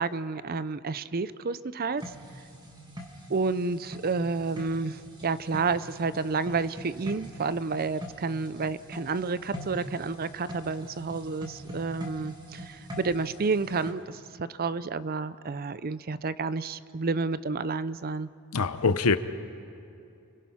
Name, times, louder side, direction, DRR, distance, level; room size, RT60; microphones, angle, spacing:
voice 1, 0.0-2.0 3.3-18.3, right 4 dB, 40° right, 15 dB, 0.6 m, -30 dB
sound 1, 2.0-13.9, equal, 20° right, 2.4 m, -43 dB
voice 2, 18.5-19.2, left 4 dB, 75° left, 12 dB, 0.9 m, -23 dB
29.5 x 22.5 x 5.8 m, 2.6 s
head